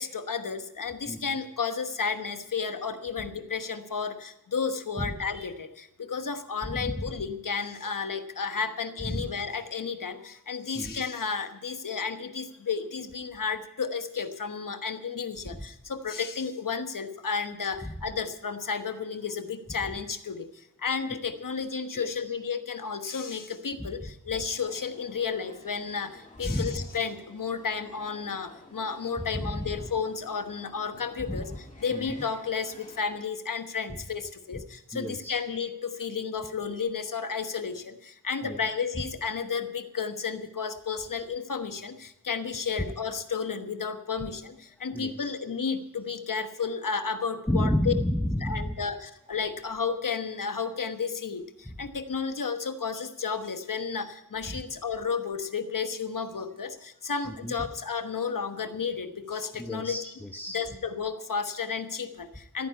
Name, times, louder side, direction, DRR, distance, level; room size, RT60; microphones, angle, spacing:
voice 1, 0.0-31.5 31.8-47.9 48.4-60.0 60.5-62.7, left 5 dB, 70° left, 9 dB, 1.3 m, -32 dB
voice 2, 6.6-7.1 9.0-9.3 10.7-11.0 17.8-17.9 21.1-21.2 21.9-22.3 23.8-24.1 26.4-26.9 29.3-29.9 31.3-31.6 31.9-32.2 33.9-34.0 34.5-34.6 34.9-35.4 38.4-39.0 44.8-45.4 47.5-48.8 51.6-51.8 54.5-54.6 57.3-57.5 59.6-60.6, left 1 dB, 5° left, 6 dB, 0.9 m, -32 dB
sound 1, 24.5-33.2, left 2 dB, 25° left, 2.8 m, -53 dB
14.5 x 9.3 x 8.4 m, 0.81 s
wide cardioid pair, 90°, 33 cm